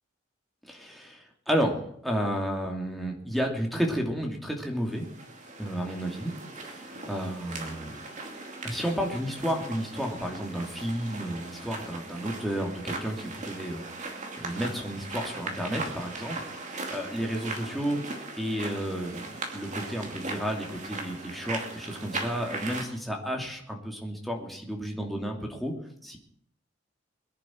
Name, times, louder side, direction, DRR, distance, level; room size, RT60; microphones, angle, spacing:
voice 1, 0.6-5.1 5.6-6.3 6.6-7.9 8.6-13.8 14.4-18.0 18.3-25.7 26.0-26.2, equal, ahead, 0 dB, 2.7 m, -32 dB
sound 1, 4.8-22.8, right 3 dB, 40° right, 2.5 m, -39 dB
22.5 x 10.5 x 4.6 m, 0.64 s
head